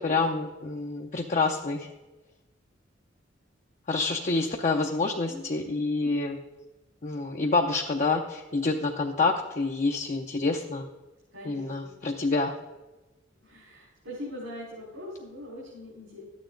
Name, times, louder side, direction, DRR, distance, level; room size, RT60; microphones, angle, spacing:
voice 1, 0.0-1.9 3.9-6.4 7.0-10.8 11.5-12.5, left 3 dB, 40° left, 1 dB, 0.6 m, -27 dB
voice 2, 5.2-5.8 11.3-12.0 13.4-16.2, left 1 dB, 80° right, -7 dB, 4.2 m, -42 dB
13.0 x 9.3 x 3.8 m, 1.1 s
head